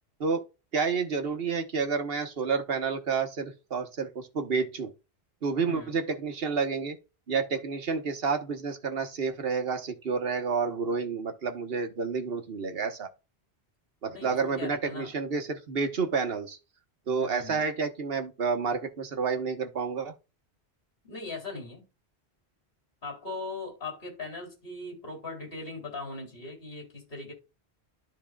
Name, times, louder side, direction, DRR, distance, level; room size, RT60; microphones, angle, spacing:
voice 1, 0.7-4.9 5.4-7.0 7.3-13.1 14.0-16.6 17.1-20.1, right 5 dB, 60° right, 1.4 m, -29 dB
voice 2, 14.1-15.1 17.2-17.6 21.0-21.8 23.0-27.3, left 3 dB, 60° left, 3.3 m, -39 dB
13.0 x 4.3 x 2.3 m
omnidirectional pair, 1.1 m